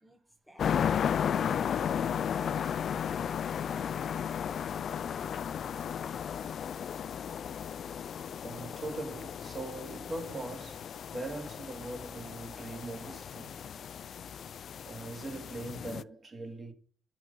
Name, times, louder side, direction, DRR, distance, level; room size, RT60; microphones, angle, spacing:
voice 1, 0.5-2.9, equal, 5° right, 1.6 m, -55 dB
sound 1, 0.6-16.0, left 8 dB, 60° left, 0.4 m, -34 dB
voice 2, 2.5-2.9 8.4-10.8 11.1-13.5 14.8-16.7, right 2 dB, 35° right, 2.4 m, -41 dB
10.5 x 6.2 x 5.4 m
cardioid pair, 90°, 0 cm